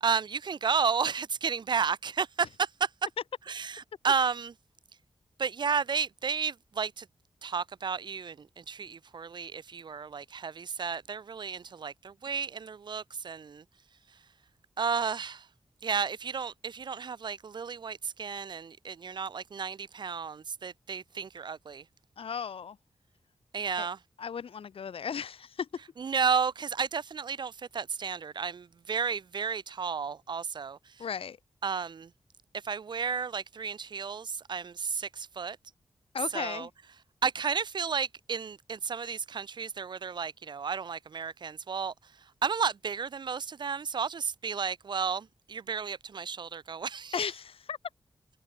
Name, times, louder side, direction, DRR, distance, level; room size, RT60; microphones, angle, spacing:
voice 1, 0.0-2.9 3.5-4.5 5.4-7.1 7.4-13.6 14.8-15.5 15.8-21.8 23.5-24.0 26.0-30.8 31.6-32.1 32.6-35.6 36.3-36.7 37.2-41.9 42.4-47.2, right 6 dB, 55° right, 0.5 m, -32 dB
voice 2, 22.2-22.8 23.8-23.9 24.2-25.7 31.0-31.4 36.1-36.7 47.1-47.8, left 7 dB, 90° left, 1.1 m, -35 dB
wide cardioid pair, 145°, 9 cm